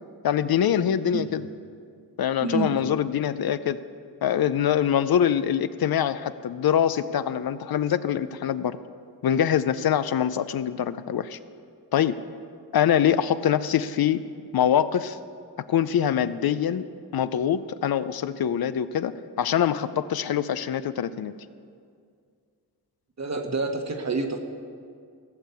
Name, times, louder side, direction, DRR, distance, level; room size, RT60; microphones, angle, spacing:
voice 1, 0.2-1.4 2.2-3.8 4.2-8.8 9.2-11.4 11.9-12.2 12.7-14.2 14.5-15.2 15.7-16.9 17.1-21.3, left 9 dB, 65° left, 13 dB, 0.5 m, -24 dB
voice 2, 23.2-24.4, right 3 dB, 45° right, 4 dB, 1.4 m, -28 dB
16.5 x 6.5 x 6.9 m, 2.2 s
cardioid pair, 70°, 39 cm